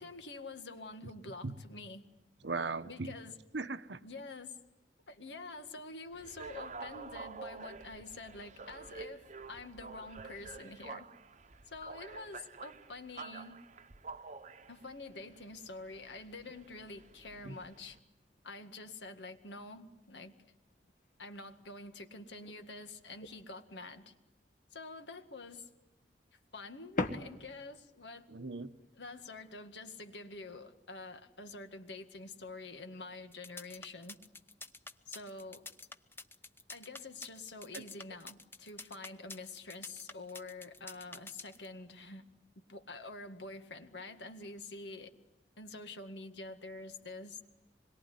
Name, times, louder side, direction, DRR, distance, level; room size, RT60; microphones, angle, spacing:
voice 1, 0.0-2.0 2.8-3.3 4.0-4.6 5.1-11.1 11.7-13.6 14.7-18.0 18.4-20.4 21.2-24.1 24.7-25.7 26.5-28.3 29.0-34.2 35.1-35.6 36.7-42.2 42.6-45.1 45.6-47.4, left 3 dB, 85° left, 7 dB, 2.0 m, -47 dB
voice 2, 2.4-3.2 3.5-4.0 17.4-17.6 28.3-28.7 37.7-37.8, right 3 dB, 85° right, 12 dB, 1.1 m, -38 dB
sound 1, 6.1-18.0, right 4 dB, 45° right, 1.0 m, -49 dB
sound 2, 18.1-18.6 19.1-19.3 19.7-22.0 22.4-23.7 24.1-25.0 25.4-26.2 26.5-28.0 28.6-29.6, left 2 dB, 50° left, 1.5 m, -44 dB
sound 3, 33.3-41.7, left 3 dB, 15° left, 0.9 m, -48 dB
26.0 x 22.0 x 9.6 m, 1.0 s
head